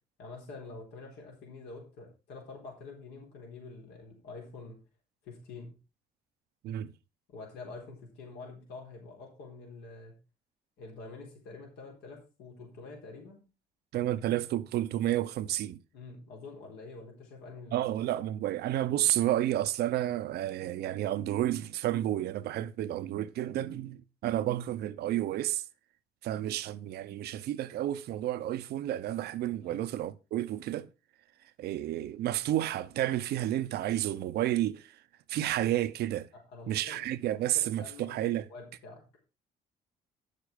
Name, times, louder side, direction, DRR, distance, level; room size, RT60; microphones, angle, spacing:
voice 1, 0.2-4.8 5.2-5.8 7.3-10.1 10.8-13.4 15.9-17.9 29.6-29.8 36.3-37.0 37.3-39.0, left 3 dB, 80° left, 4.0 m, -47 dB
voice 2, 13.9-15.8 17.7-25.6 26.2-30.9 31.6-34.9 35.3-36.3 36.7-38.5, right 13 dB, 75° right, 0.8 m, -31 dB
9.7 x 6.7 x 5.1 m
supercardioid pair, 70°, 17 cm